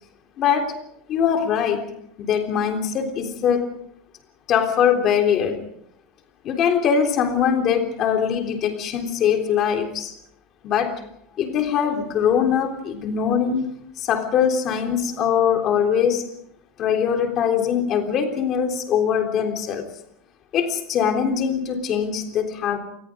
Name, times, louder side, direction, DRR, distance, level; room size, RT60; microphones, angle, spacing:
voice 1, 0.4-0.8 1.1-1.8 2.2-3.7 4.5-5.6 6.4-10.1 10.6-10.9 11.4-13.7 14.0-16.3 16.8-19.9 20.5-22.8, left 8 dB, 30° left, 4 dB, 3.5 m, -22 dB
27.5 x 20.5 x 5.1 m, 0.72 s
supercardioid pair, 175°, 0 cm